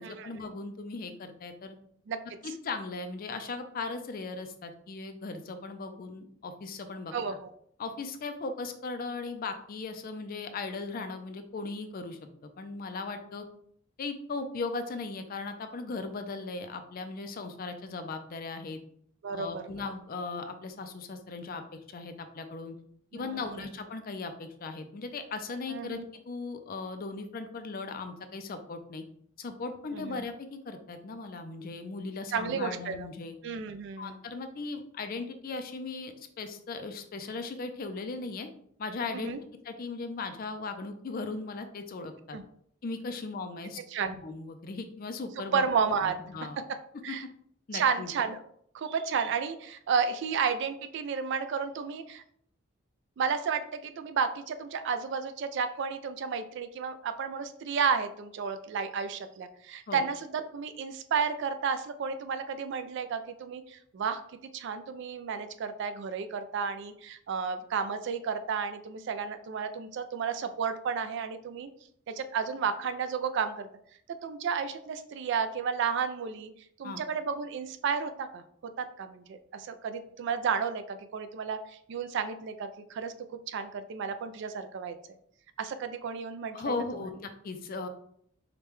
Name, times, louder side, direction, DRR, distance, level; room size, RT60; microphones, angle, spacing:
voice 1, 0.0-1.8 2.4-7.1 7.8-13.4 14.0-18.8 19.3-22.8 23.1-29.0 29.4-33.4 34.0-38.5 38.8-39.3 39.6-42.4 42.8-45.7 46.0-46.6 47.1-47.2 47.7-48.1 59.9-60.0 76.8-77.0 86.5-87.9, left 3 dB, 45° left, 8 dB, 0.4 m, -38 dB
voice 2, 7.1-7.5 19.2-19.6 23.1-23.6 25.7-26.1 29.9-30.2 32.3-33.1 33.4-34.2 39.1-39.4 42.3-42.4 43.9-44.2 45.5-46.2 47.0-47.2 47.7-48.4 48.7-52.2 53.2-64.2 64.5-71.7 72.1-73.7 74.2-76.5 76.8-78.4 78.8-81.6 81.9-83.1 83.5-85.0 85.6-86.7, right 6 dB, 60° right, 10 dB, 0.3 m, -32 dB
4.9 x 2.2 x 3.0 m, 0.66 s
head